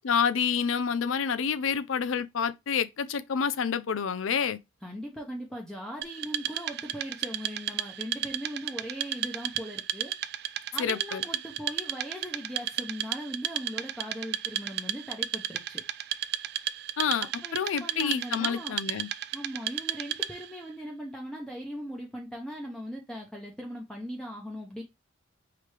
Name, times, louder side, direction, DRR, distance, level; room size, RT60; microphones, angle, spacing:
voice 1, 0.0-4.6 10.8-11.2 17.0-17.3 17.5-19.1, left 6 dB, 75° left, 0.5 m, -28 dB
voice 2, 4.8-10.1 10.7-15.8 17.2-18.8 19.3-24.8, equal, 5° left, 0.8 m, -39 dB
Wood, 6.0-20.6, right 12 dB, 50° right, 0.3 m, -34 dB
4.7 x 3.4 x 3.3 m
head